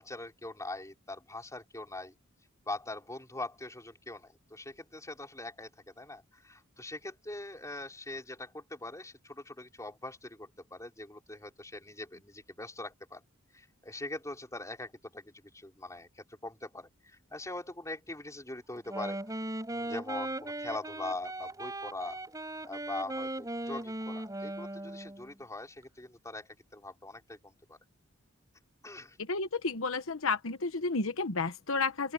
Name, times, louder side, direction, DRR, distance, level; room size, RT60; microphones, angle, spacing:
voice 1, 0.0-2.1 2.7-13.2 13.5-19.2 19.7-22.2 22.6-27.8 28.8-29.2, left 2 dB, 15° left, 5.1 m, -42 dB
Wind instrument woodwind instrument, 18.8-25.3, right 1 dB, 15° right, 7.6 m, -38 dB
voice 2, 29.2-32.1, left 3 dB, 65° left, 1.1 m, -31 dB
open air
head